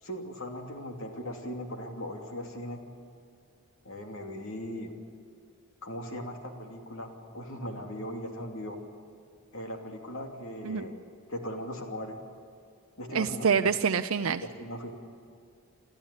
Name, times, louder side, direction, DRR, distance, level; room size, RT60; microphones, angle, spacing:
voice 1, 0.0-2.8 3.8-4.9 5.8-8.8 9.5-11.0 11.3-12.2 13.0-13.5 14.4-14.9, equal, 70° left, 3 dB, 2.9 m, -38 dB
voice 2, 13.1-14.4, right 6 dB, 75° right, 8 dB, 0.6 m, -26 dB
29.0 x 13.5 x 9.9 m, 2.4 s
head